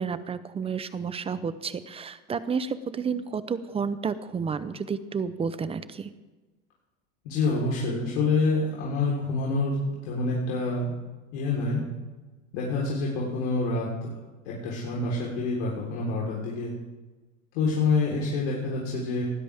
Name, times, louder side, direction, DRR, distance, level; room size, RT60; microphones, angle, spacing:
voice 1, 0.0-6.1, right 6 dB, 15° right, 14 dB, 0.6 m, -31 dB
voice 2, 7.2-9.8 10.0-10.9 11.3-11.8 12.5-13.9 14.5-16.7 17.5-19.2, left 3 dB, 65° left, -4 dB, 3.9 m, -27 dB
19.5 x 13.0 x 3.5 m, 1.2 s
supercardioid pair, 120°, 38 cm